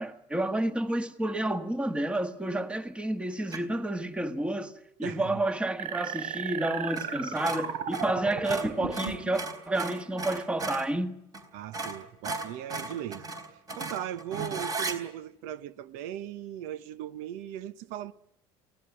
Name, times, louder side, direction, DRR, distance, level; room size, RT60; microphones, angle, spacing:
voice 1, 0.0-4.7 5.0-11.1, right 1 dB, 10° right, 1.6 m, -30 dB
sound 1, 3.5-3.8 6.9-7.1 7.3-10.9 11.3-11.4 11.7-15.0, right 3 dB, 30° right, 4.0 m, -36 dB
sound 2, 5.8-9.3, right 7 dB, 65° right, 4.3 m, -35 dB
voice 2, 11.5-13.3 13.8-18.1, right 11 dB, 80° right, 0.9 m, -38 dB
23.5 x 17.0 x 9.9 m
cardioid pair, 125°, 12 cm